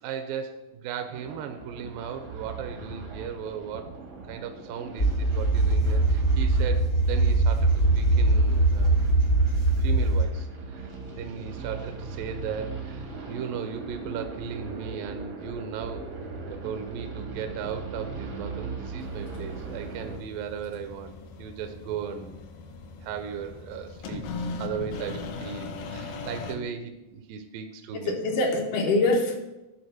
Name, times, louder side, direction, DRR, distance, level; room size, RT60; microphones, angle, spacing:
voice 1, 0.0-3.9 4.3-9.0 9.8-16.1 16.5-22.4 23.0-28.2, right 7 dB, 80° right, 6 dB, 2.2 m, -36 dB
sound 1, 1.1-20.2, right 4 dB, 65° right, 1.0 m, -39 dB
sound 2, 5.0-10.2, right 2 dB, 50° left, 0.9 m, -21 dB
sound 3, 19.0-26.6, left 4 dB, 85° left, 1.5 m, -39 dB
voice 2, 27.9-29.4, left 2 dB, 70° left, 2 dB, 2.4 m, -24 dB
11.0 x 4.0 x 6.4 m, 0.99 s
omnidirectional pair, 4.2 m